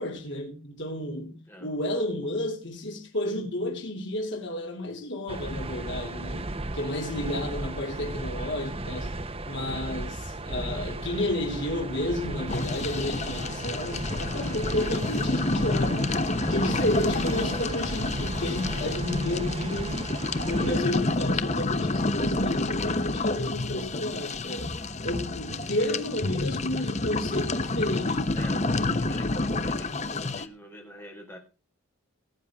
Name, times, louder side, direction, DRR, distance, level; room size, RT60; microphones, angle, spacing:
voice 1, 0.0-9.1 9.5-20.1 20.4-24.7 25.0-28.3, left 1 dB, 55° left, 3.0 m, -31 dB
sound 1, 5.3-20.8, right 2 dB, 25° right, 1.0 m, -35 dB
voice 2, 7.0-7.4 16.9-17.1 28.3-31.4, equal, 10° left, 4.5 m, -46 dB
sound 2, 12.5-30.5, left 2 dB, 30° left, 1.0 m, -29 dB
18.0 x 9.5 x 3.6 m
head